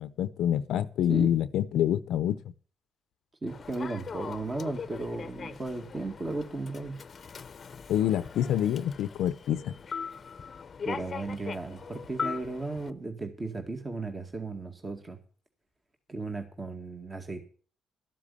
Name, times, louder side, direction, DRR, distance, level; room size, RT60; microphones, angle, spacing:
voice 1, 0.0-2.4 7.9-9.7, left 10 dB, 80° left, 0.7 m, -27 dB
voice 2, 3.4-7.0 10.8-15.2 16.1-17.5, right 2 dB, 25° right, 2.0 m, -35 dB
Human voice / Subway metro underground, 3.5-12.9, left 6 dB, 40° left, 0.8 m, -40 dB
13.0 x 7.6 x 8.5 m
cardioid pair, 90°, 0 cm